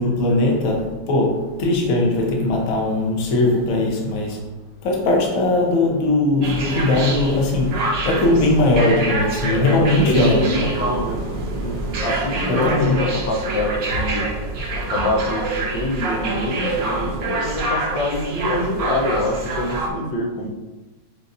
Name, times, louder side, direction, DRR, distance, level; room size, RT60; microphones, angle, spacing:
voice 1, 0.0-4.4 4.8-10.5 12.5-13.0, left 2 dB, 55° left, -1 dB, 1.2 m, -19 dB
sound 1, 6.4-19.9, right 2 dB, 75° right, 1.5 m, -26 dB
voice 2, 9.5-14.3 14.7-20.5, left 1 dB, 85° left, -1 dB, 1.6 m, -25 dB
7.6 x 2.6 x 2.6 m, 1.2 s
omnidirectional pair, 2.0 m